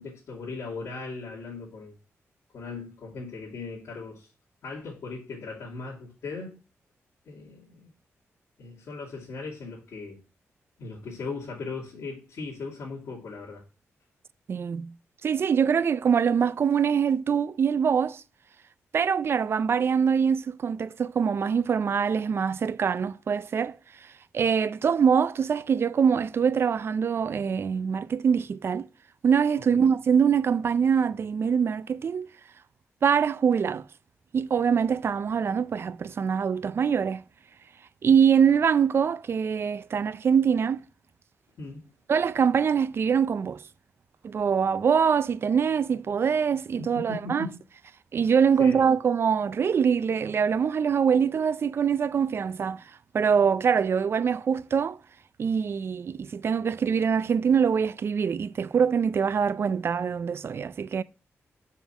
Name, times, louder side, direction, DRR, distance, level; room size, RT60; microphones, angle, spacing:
voice 1, 0.0-1.9 2.5-4.3 4.6-6.6 7.3-7.9 8.6-10.2 10.8-13.6 29.7-29.8 41.6-41.9 46.8-47.6 48.6-48.8, left 4 dB, 75° left, 2.8 m, -38 dB
voice 2, 14.5-14.9 15.2-18.2 18.9-23.8 24.3-28.9 29.2-32.3 33.0-33.8 34.3-37.2 38.0-40.8 42.1-43.6 44.2-47.5 48.1-52.8 53.1-55.0 55.4-61.0, right 7 dB, 55° right, 0.5 m, -24 dB
7.2 x 5.7 x 6.0 m
cardioid pair, 105°, 5 cm